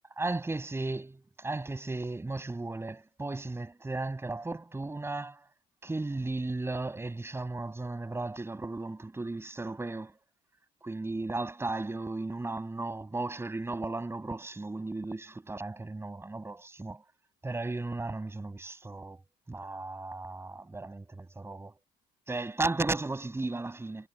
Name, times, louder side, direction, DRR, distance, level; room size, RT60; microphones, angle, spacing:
voice 1, 0.2-1.1 1.4-5.4 5.8-10.1 10.8-17.0 17.4-19.2 19.5-21.7 22.3-24.1, right 2 dB, 15° right, 6.6 m, -35 dB
cardioid pair, 110°, 17 cm